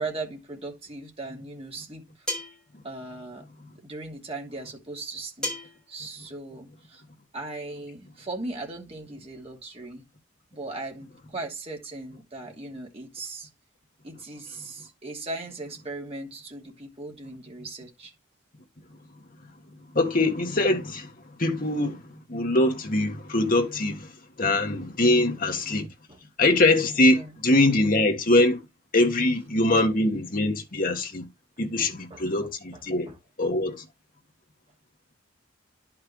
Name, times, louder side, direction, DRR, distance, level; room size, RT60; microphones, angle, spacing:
voice 1, 0.0-2.3 2.8-3.5 3.8-5.5 5.9-7.0 7.3-10.0 10.5-13.5 14.0-18.1 26.1-26.2 27.1-27.4 31.8-32.3 32.7-32.8 33.1-33.2, right 2 dB, 30° right, 2.7 m, -38 dB
sound 1, 2.3-2.6 5.4-5.8, left 1 dB, 5° left, 5.0 m, -32 dB
voice 2, 19.9-25.9 26.4-28.6 28.9-31.3 31.6-33.1 33.4-33.8, left 2 dB, 45° left, 1.7 m, -23 dB
11.0 x 5.9 x 3.1 m
head